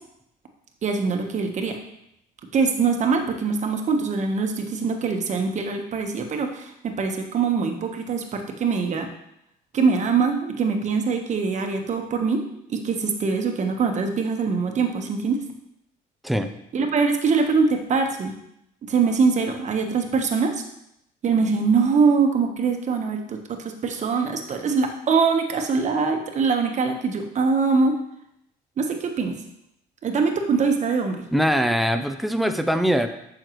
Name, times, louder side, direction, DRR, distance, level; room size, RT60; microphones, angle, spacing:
voice 1, 0.8-1.8 2.5-9.1 9.7-12.4 12.7-15.4 16.7-18.3 18.8-20.5 21.2-23.4 23.8-28.0 28.8-29.3 30.0-31.2, right 5 dB, 45° right, 4 dB, 1.2 m, -23 dB
voice 2, 31.3-33.1, equal, ahead, 7 dB, 0.6 m, -22 dB
9.1 x 6.4 x 3.1 m, 0.78 s
cardioid pair, 110°, 17 cm